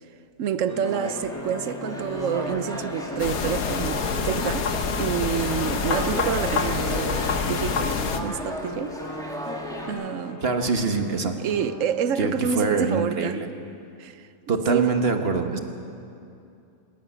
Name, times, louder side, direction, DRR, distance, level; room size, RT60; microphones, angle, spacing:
voice 1, 0.4-9.0 9.9-10.4 11.4-13.4 14.0-14.3 14.7-14.9, right 8 dB, 65° right, 1.0 m, -28 dB
sound 1, 0.7-12.6, left 2 dB, 20° left, 0.5 m, -38 dB
sound 2, 0.8-9.9, equal, ahead, 2.0 m, -36 dB
sound 3, 3.2-8.2, left 5 dB, 65° left, 1.5 m, -26 dB
voice 2, 10.4-11.4 12.2-13.5 14.5-15.6, right 4 dB, 40° right, 1.4 m, -24 dB
26.0 x 10.5 x 9.8 m
omnidirectional pair, 1.6 m